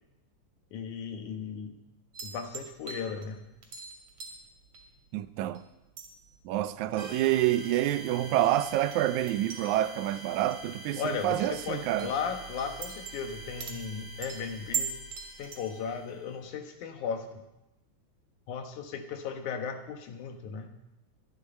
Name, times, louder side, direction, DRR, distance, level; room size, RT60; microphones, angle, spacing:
voice 1, 0.7-1.7 2.2-3.4 11.0-15.0 15.4-17.4 18.5-20.7, left 6 dB, 85° left, 2.7 m, -36 dB
sound 1, 2.1-5.6 5.9-15.9, right 6 dB, 60° right, 3.5 m, -41 dB
voice 2, 5.1-5.6 6.5-12.1, right 13 dB, 80° right, 2.0 m, -28 dB
sound 2, 7.0-16.3, right 1 dB, 45° right, 2.2 m, -46 dB
22.5 x 9.1 x 4.4 m
omnidirectional pair, 3.4 m